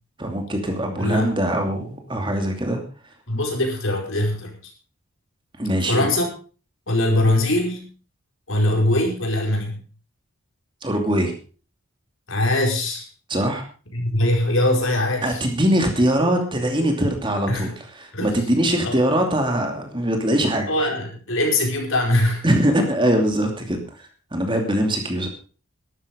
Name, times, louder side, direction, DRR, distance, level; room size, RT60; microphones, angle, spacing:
voice 1, 0.2-2.8 5.6-6.1 10.8-11.3 13.3-13.6 15.2-17.7 18.0-20.9 22.4-23.8 24.3-25.3, right 1 dB, 20° right, 4 dB, 2.7 m, -22 dB
voice 2, 1.0-1.3 3.3-4.5 5.8-6.3 6.9-7.9 8.5-9.8 12.3-13.1 13.9-15.4 17.5-17.7 18.1-19.0 20.7-22.5, left 1 dB, 65° left, 2 dB, 4.9 m, -22 dB
13.5 x 12.0 x 5.2 m, 0.37 s
head